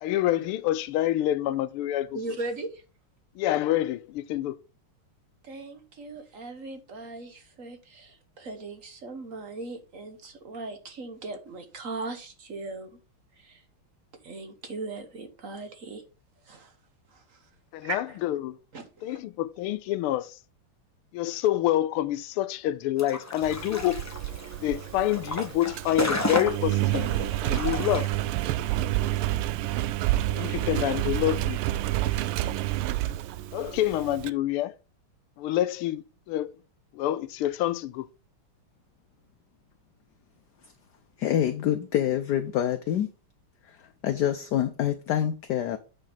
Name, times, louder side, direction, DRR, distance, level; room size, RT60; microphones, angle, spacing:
voice 1, 0.0-2.2 3.4-4.6 17.7-18.6 19.0-20.4 21.1-24.0 24.6-27.1 27.4-28.1 30.3-31.6 33.5-34.7 35.4-36.5 36.9-38.1, left 13 dB, 85° left, 1.5 m, -27 dB
voice 2, 2.1-2.8 5.4-12.9 13.4-13.6 14.2-16.0 16.4-16.7 17.1-17.5 17.8-18.2 18.7-19.2, right 3 dB, 45° right, 1.2 m, -38 dB
sound 1, 23.0-28.1, left 1 dB, 20° left, 0.4 m, -33 dB
Engine, 23.4-34.3, right 15 dB, 80° right, 1.4 m, -29 dB
voice 3, 41.2-43.1 43.6-45.8, left 10 dB, 70° left, 1.0 m, -26 dB
8.8 x 5.3 x 3.9 m
omnidirectional pair, 2.4 m